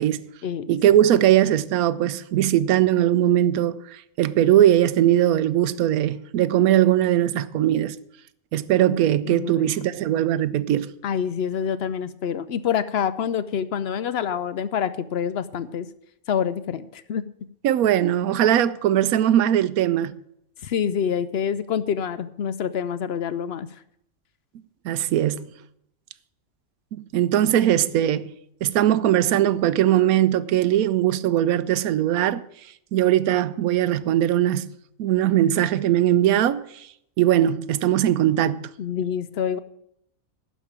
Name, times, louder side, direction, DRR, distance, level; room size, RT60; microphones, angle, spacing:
voice 1, 0.7-8.0 8.5-10.9 17.6-20.1 24.8-25.5 26.9-28.3 28.6-32.4 32.9-34.7 35.0-36.9 37.2-38.7, right 12 dB, 90° right, 1.1 m, -20 dB
voice 2, 9.3-9.7 11.0-15.9 16.3-17.2 20.6-23.7 38.8-39.6, left 8 dB, 65° left, 0.6 m, -26 dB
11.5 x 5.2 x 8.7 m
omnidirectional pair, 1.5 m